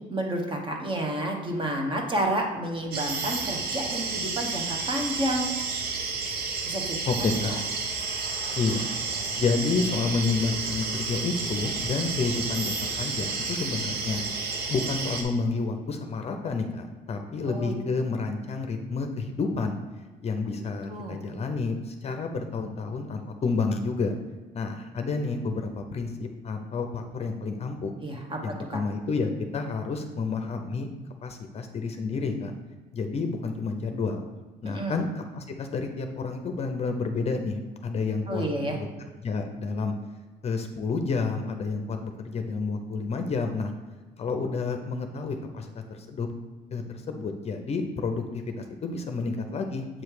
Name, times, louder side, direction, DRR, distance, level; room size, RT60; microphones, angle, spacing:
voice 1, 0.1-5.5 6.6-7.6 17.5-17.7 20.9-21.2 28.0-28.8 34.6-35.0 38.3-38.8, right 1 dB, 30° right, 2 dB, 1.1 m, -30 dB
sound 1, 2.9-15.2, right 4 dB, 70° right, 1.0 m, -31 dB
voice 2, 7.1-7.5 8.6-8.9 9.4-14.2 14.7-19.8 20.2-24.1 24.5-27.9 28.4-30.9 31.2-32.5 32.9-34.2 34.6-38.5 38.7-38.9 39.2-39.9 40.4-43.7 44.2-46.3 46.7-49.9, left 4 dB, 40° left, 5 dB, 0.6 m, -30 dB
7.6 x 3.2 x 4.8 m, 1.3 s
cardioid pair, 110°, 17 cm